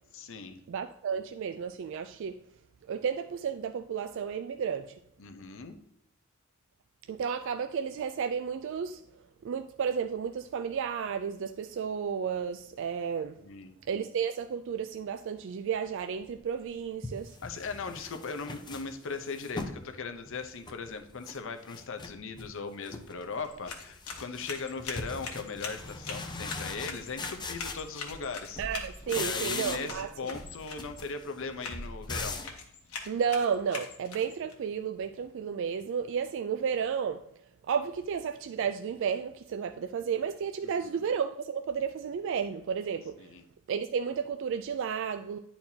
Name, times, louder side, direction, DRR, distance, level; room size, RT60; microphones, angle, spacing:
voice 1, 0.1-0.6 5.2-5.8 13.4-13.8 17.4-28.6 29.1-32.4 40.6-41.1 43.2-43.4, left 4 dB, 65° left, 0.7 m, -39 dB
voice 2, 0.7-2.4 2.9-5.0 7.1-9.0 9.4-13.4 13.9-17.4 28.6-30.1 33.1-37.2 37.7-43.3 43.7-45.4, right 7 dB, 60° right, 0.3 m, -32 dB
sound 1, 16.4-16.5 17.0-19.8 20.3-21.4 21.7-22.5 22.8-23.3 23.6-28.3 28.5-30.1 30.3-32.6, left 3 dB, 20° left, 0.6 m, -40 dB
sound 2, 23.4-34.5, left 5 dB, 90° left, 1.3 m, -43 dB
10.5 x 4.4 x 2.8 m
head